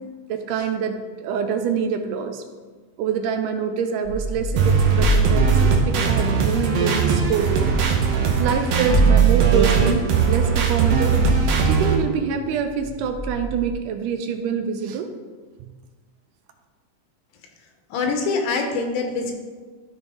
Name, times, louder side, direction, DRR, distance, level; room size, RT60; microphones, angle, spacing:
voice 1, 0.0-2.4 3.0-7.7 8.4-11.2 11.7-15.1 15.6-15.7, right 6 dB, 90° right, 6 dB, 2.2 m, -26 dB
sound 1, 4.0-7.9 8.2-8.3 8.5-13.7, right 4 dB, 40° right, 1.3 m, -23 dB
sound 2, 4.6-12.0, right 5 dB, 70° right, 1.7 m, -20 dB
voice 2, 17.9-19.3, left 4 dB, 80° left, 3 dB, 2.4 m, -24 dB
12.5 x 4.2 x 3.6 m, 1.4 s
omnidirectional pair, 3.7 m